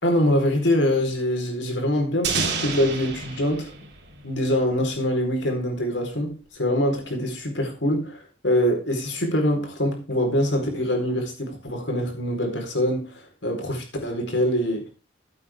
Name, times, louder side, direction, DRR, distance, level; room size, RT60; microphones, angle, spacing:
voice 1, 0.0-3.7 4.2-14.9, left 1 dB, 85° left, 4.4 m, -24 dB
sound 1, 2.2-5.0, right 5 dB, 65° right, 3.3 m, -30 dB
14.0 x 8.6 x 3.7 m
head